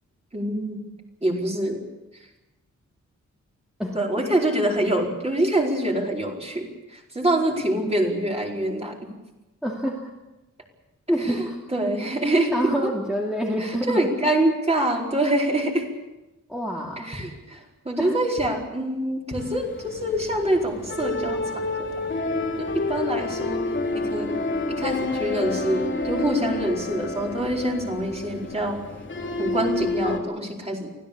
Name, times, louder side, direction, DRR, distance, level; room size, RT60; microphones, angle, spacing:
voice 1, 0.3-0.8 1.2-1.8 3.9-9.0 11.2-12.9 13.6-15.9 17.0-21.9 22.6-23.6 23.9-28.8 29.4-30.9, right 1 dB, 20° right, 0 dB, 4.6 m, -25 dB
voice 2, 9.6-10.1 11.1-11.6 12.5-14.1 16.5-17.1 18.0-18.2, equal, ahead, -2 dB, 2.5 m, -27 dB
sound 1, 19.3-30.2, left 2 dB, 40° left, 2.9 m, -29 dB
24.5 x 17.0 x 8.5 m, 1.0 s
wide cardioid pair, 160°, 30 cm